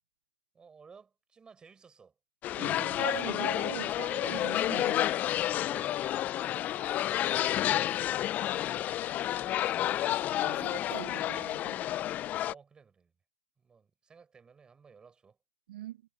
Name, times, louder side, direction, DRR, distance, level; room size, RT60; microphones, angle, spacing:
voice 1, 0.5-2.1 5.6-10.0 12.4-13.1 13.6-15.4, right 5 dB, 15° right, 6.3 m, -57 dB
sound 1, 2.4-12.5, left 13 dB, 30° left, 0.8 m, -30 dB
voice 2, 2.6-5.1 10.3-11.8 15.7-16.0, right 14 dB, 60° right, 1.3 m, -42 dB
hypercardioid pair, 110°, 6 cm